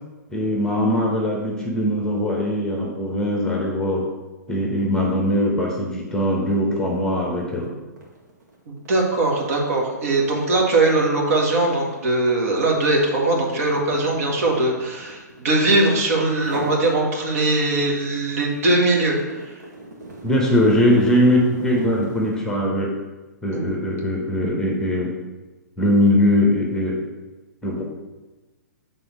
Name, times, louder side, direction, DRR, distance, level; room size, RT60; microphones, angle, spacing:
voice 1, 0.3-4.1 4.5-7.7 20.2-23.0 23.4-25.1 25.8-27.0 27.6-27.8, left 1 dB, 5° left, -1 dB, 1.1 m, -21 dB
sound 1, 6.9-7.1 7.4-15.9 16.3-16.9 17.3-22.5, right 2 dB, 70° right, 1.9 m, -40 dB
voice 2, 8.7-19.5 23.5-23.7, right 2 dB, 55° right, 0 dB, 1.7 m, -21 dB
7.0 x 3.7 x 6.0 m, 1.2 s
figure-of-eight pair, 120°, 10 cm